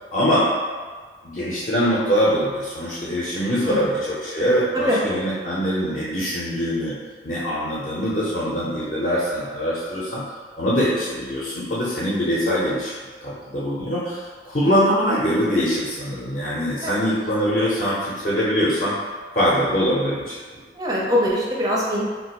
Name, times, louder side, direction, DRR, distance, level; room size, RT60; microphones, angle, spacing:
voice 1, 0.1-0.5 1.2-6.9 7.2-10.2 10.6-12.9 13.2-18.9 19.3-20.3, equal, 45° left, -8 dB, 0.6 m, -23 dB
voice 2, 20.8-22.0, equal, 20° right, -4 dB, 0.4 m, -22 dB
2.4 x 2.3 x 4.0 m, 1.5 s
head